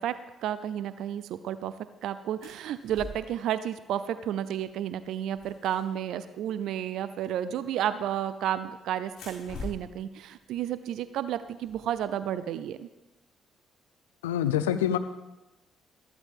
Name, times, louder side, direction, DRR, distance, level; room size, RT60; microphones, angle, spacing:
voice 1, 0.0-1.7 2.0-12.9, right 10 dB, 70° right, 13 dB, 0.5 m, -32 dB
sound 1, 2.4-3.4 4.5-4.7 5.0-6.5 7.9-8.5 9.0-12.1, left 2 dB, 70° left, 5.4 m, -45 dB
voice 2, 14.2-15.0, left 10 dB, 90° left, 12 dB, 0.6 m, -25 dB
14.5 x 14.0 x 3.7 m, 1.0 s
hypercardioid pair, 50°, 0 cm